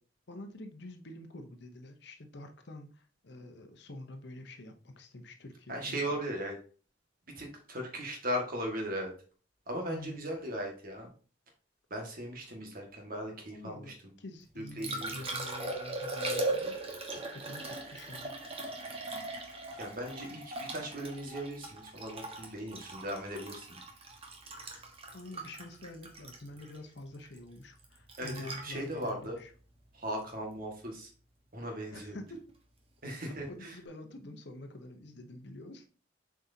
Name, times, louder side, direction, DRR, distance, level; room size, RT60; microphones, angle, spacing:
voice 1, 0.3-6.2 9.8-10.3 13.5-16.7 17.1-18.3 25.1-29.5 31.7-32.4 33.2-35.9, left 1 dB, 60° left, 6 dB, 0.9 m, -47 dB
voice 2, 5.7-6.6 7.4-9.1 9.7-11.1 11.9-14.1 14.6-15.3 19.7-23.8 28.2-29.4 29.9-31.1 31.5-32.2 33.0-33.8, equal, 50° right, 1 dB, 1.8 m, -38 dB
Liquid, 14.4-30.5 33.3-33.4, right 2 dB, 30° right, 1.3 m, -39 dB
7.6 x 4.8 x 2.8 m, 0.39 s
head